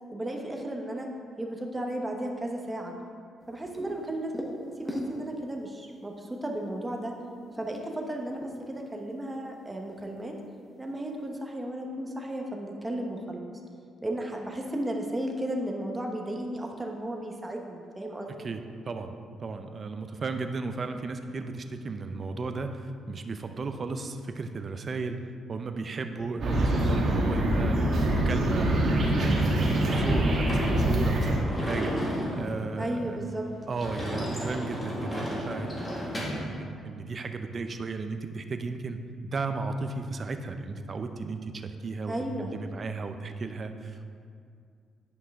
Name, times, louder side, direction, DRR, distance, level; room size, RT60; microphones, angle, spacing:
voice 1, 0.1-1.1 1.4-2.9 3.5-4.3 4.8-7.1 7.5-10.3 10.8-13.5 14.0-18.5 32.8-33.4 42.1-42.5, right 1 dB, 15° right, 1 dB, 1.0 m, -34 dB
sound 1, 3.4-5.6 5.9-6.0 6.5-6.9 7.3-9.0 9.2-10.2 10.5-10.6 10.9-11.3, equal, 10° left, 1.1 m, -40 dB
voice 2, 18.3-25.2 25.5-27.8 28.1-33.2 33.7-35.7 36.1-42.1 42.4-44.1, right 4 dB, 40° right, 7 dB, 0.6 m, -35 dB
sound 2, 26.4-31.4, right 1 dB, 60° right, 1.6 m, -24 dB
Sliding door / Slam, 29.8-36.5, equal, 30° left, 1.9 m, -34 dB
9.9 x 5.5 x 3.6 m, 2.3 s
cardioid pair, 90°, 0 cm